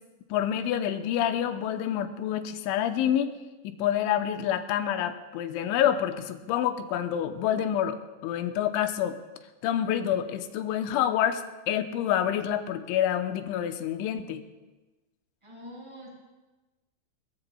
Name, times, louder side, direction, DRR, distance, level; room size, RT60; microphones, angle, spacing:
voice 1, 0.3-3.3 3.6-9.2 9.6-14.4, left 10 dB, 85° left, 7 dB, 3.1 m, -27 dB
voice 2, 15.4-16.1, equal, 5° right, -3 dB, 4.9 m, -44 dB
22.0 x 20.0 x 2.3 m, 1.1 s
omnidirectional pair, 5.4 m